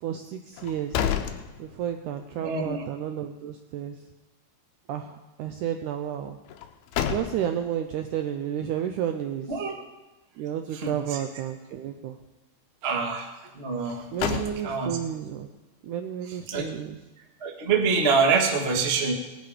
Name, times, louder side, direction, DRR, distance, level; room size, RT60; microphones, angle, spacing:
voice 1, 0.0-1.1 1.6-4.0 4.9-6.4 7.1-9.5 10.4-12.2 12.8-13.0 14.1-15.5 15.8-17.0, right 9 dB, 80° right, 6 dB, 1.8 m, -31 dB
sound 1, 0.5-2.2 2.6-2.7 6.5-7.7 13.8-15.1, left 9 dB, 85° left, 2.8 m, -31 dB
voice 2, 2.4-2.8 9.5-9.7 10.7-11.2 12.8-13.3 13.6-14.9 16.5-16.6 17.4-19.1, right 5 dB, 45° right, 2 dB, 0.7 m, -26 dB
19.0 x 10.5 x 5.1 m, 1.1 s
omnidirectional pair, 4.4 m